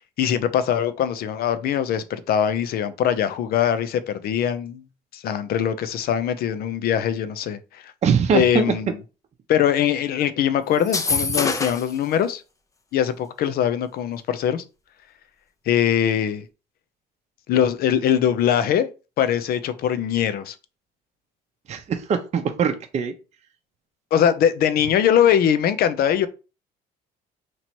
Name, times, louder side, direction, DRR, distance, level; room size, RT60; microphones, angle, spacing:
voice 1, 0.2-4.8 5.1-7.9 8.3-8.9 9.5-12.4 12.9-14.6 15.7-16.5 17.5-18.9 19.2-20.5 24.1-26.3, left 9 dB, 65° left, 0.5 m, -22 dB
voice 2, 8.0-8.8 21.7-23.1, right 6 dB, 40° right, 0.6 m, -22 dB
sound 1, 10.8-12.0, left 4 dB, 20° left, 0.5 m, -25 dB
3.0 x 2.8 x 4.4 m
cardioid pair, 110°, 17 cm